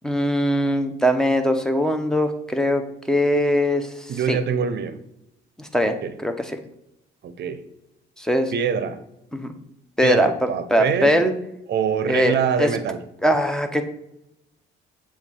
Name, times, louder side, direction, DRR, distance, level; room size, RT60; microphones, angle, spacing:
voice 1, 0.0-2.8 3.1-3.9 4.3-4.4 5.6-5.9 6.2-6.5 8.2-8.5 9.3-9.5 10.0-10.3 10.7-11.3 12.1-12.7 13.2-13.8, equal, 5° left, 6 dB, 0.8 m, -21 dB
voice 2, 4.1-5.0 6.0-6.1 7.2-7.6 8.5-9.0 10.0-11.1 11.7-13.0, right 7 dB, 60° right, 11 dB, 0.7 m, -24 dB
7.1 x 2.5 x 5.4 m, 0.84 s
cardioid pair, 90°, 20 cm